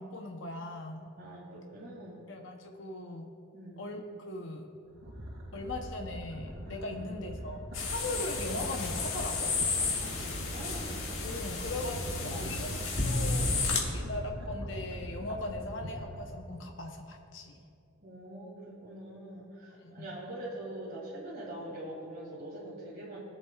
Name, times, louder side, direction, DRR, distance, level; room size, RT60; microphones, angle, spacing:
voice 1, 0.0-1.0 2.3-3.3 3.8-4.7 5.5-9.5 11.2-12.7 13.0-17.6 19.8-20.0, left 2 dB, 60° left, 2 dB, 0.8 m, -39 dB
voice 2, 1.2-2.3 3.5-3.9 6.9-7.1 10.0-11.0 12.2-12.6 13.9-14.2 18.0-23.2, right 1 dB, 45° right, -6 dB, 2.0 m, -44 dB
sound 1, 4.9-16.4, equal, 80° right, 2.1 m, -43 dB
sound 2, 7.7-13.8, left 3 dB, 75° left, 1.7 m, -32 dB
22.5 x 7.5 x 2.4 m, 2.5 s
head